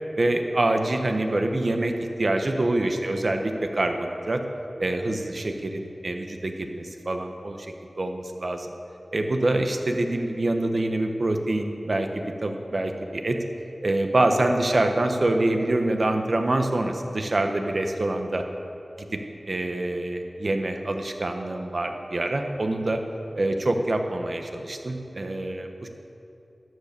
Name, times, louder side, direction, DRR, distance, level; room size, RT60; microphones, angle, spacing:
voice 1, 0.2-1.9 2.2-4.4 4.8-8.7 9.1-13.4 13.8-18.4 19.0-19.1 19.5-23.0 23.4-25.9, right 2 dB, 60° right, 5 dB, 1.1 m, -25 dB
12.5 x 9.5 x 6.9 m, 2.9 s
wide cardioid pair, 65°, 0 cm